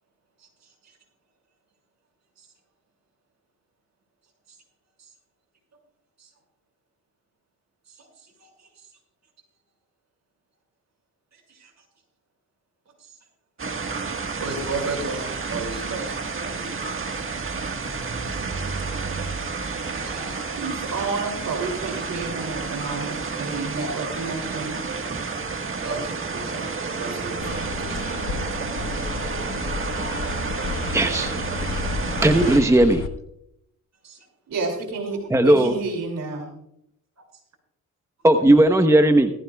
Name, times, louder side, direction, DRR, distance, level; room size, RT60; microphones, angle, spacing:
voice 1, 7.9-8.7 11.3-11.7 13.0-13.1 14.4-16.2 19.3-20.8 25.8-28.2 34.0-34.2, right 3 dB, 55° right, 1 dB, 6.2 m, -35 dB
sound 1, 13.6-32.6, right 4 dB, 40° right, 1.6 m, -30 dB
voice 2, 20.6-24.8 34.5-36.5, right 3 dB, 75° right, 3 dB, 2.9 m, -30 dB
sound 2, 27.4-33.1, left 6 dB, 80° left, 1.2 m, -32 dB
voice 3, 30.9-31.4 32.0-33.1 35.3-35.8 38.2-39.3, right 1 dB, 10° right, 7 dB, 1.0 m, -17 dB
18.5 x 15.0 x 2.4 m, 0.75 s
cardioid pair, 80°, 32 cm